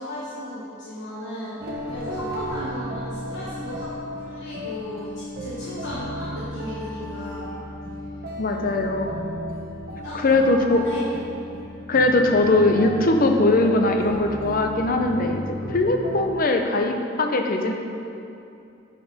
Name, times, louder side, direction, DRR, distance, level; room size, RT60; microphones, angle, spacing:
voice 1, 0.0-3.9 4.2-7.5 10.0-10.5 10.8-11.0, left 1 dB, 60° left, -9 dB, 1.3 m, -35 dB
sound 1, 1.6-16.2, equal, 50° right, 1.0 m, -34 dB
voice 2, 8.4-9.1 10.2-10.8 11.9-15.4 15.7-17.7, left 2 dB, 45° left, 4 dB, 0.6 m, -20 dB
9.7 x 4.9 x 4.1 m, 2.7 s
head